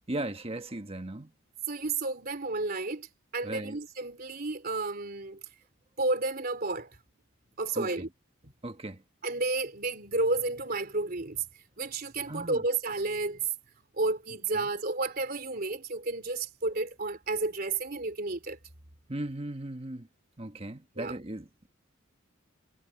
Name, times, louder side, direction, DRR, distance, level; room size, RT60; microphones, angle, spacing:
voice 1, 0.1-1.3 3.4-3.8 7.7-8.1 8.6-9.0 12.3-12.6 14.5-14.7 19.1-20.1 20.4-21.7, right 1 dB, 30° right, 1.3 m, -37 dB
voice 2, 1.7-3.1 3.3-5.4 6.0-6.9 7.6-8.1 8.4-8.5 9.2-11.4 11.8-13.5 13.9-18.6 21.0-21.2, right 3 dB, 50° right, 3.4 m, -31 dB
head